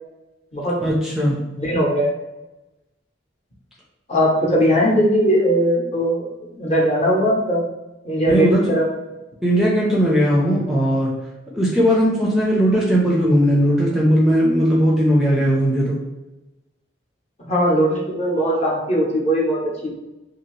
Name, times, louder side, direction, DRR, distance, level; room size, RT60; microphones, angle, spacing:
voice 1, 0.8-1.4 8.3-8.7 9.4-11.1 11.5-16.0, equal, ahead, -5 dB, 0.4 m, -18 dB
voice 2, 1.5-2.1 4.1-7.6 8.0-8.8 17.4-19.9, equal, 35° left, -3 dB, 0.8 m, -19 dB
2.7 x 2.6 x 3.1 m, 1.0 s
head